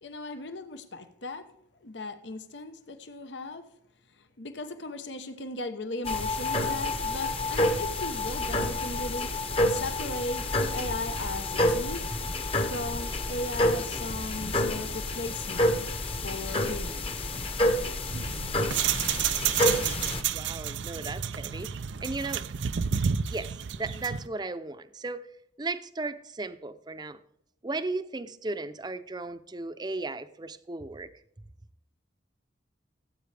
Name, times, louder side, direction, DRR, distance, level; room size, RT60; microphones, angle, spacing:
voice 1, 0.0-1.5 1.8-3.7 4.4-12.0 12.6-15.8 16.2-17.3, left 2 dB, 85° left, 8 dB, 1.1 m, -37 dB
sound 1, 6.0-20.2, left 1 dB, 30° left, 0.9 m, -29 dB
sound 2, 18.1-24.3, right 8 dB, 90° right, 0.5 m, -30 dB
voice 2, 20.3-21.7 22.0-22.4 23.0-25.3 25.6-27.2 27.6-31.1, right 3 dB, 25° right, 11 dB, 0.6 m, -36 dB
17.0 x 8.5 x 3.4 m, 0.76 s
head